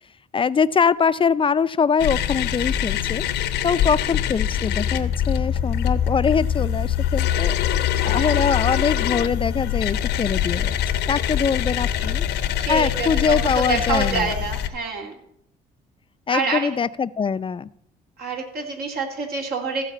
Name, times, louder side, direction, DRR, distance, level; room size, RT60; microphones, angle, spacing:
voice 1, 0.3-3.2 3.6-7.6 8.0-10.8 11.1-12.3 12.7-14.3 16.3-17.7, left 6 dB, 30° left, 14 dB, 0.5 m, -23 dB
sound 1, 2.0-14.7, left 10 dB, 85° left, 0.9 m, -23 dB
voice 2, 7.9-8.5 11.6-11.7 12.0-12.1 12.6-15.1 16.3-16.7 18.2-19.8, right 4 dB, 65° right, 2 dB, 2.9 m, -27 dB
14.5 x 4.9 x 8.3 m, 0.71 s
cardioid pair, 85°, 17 cm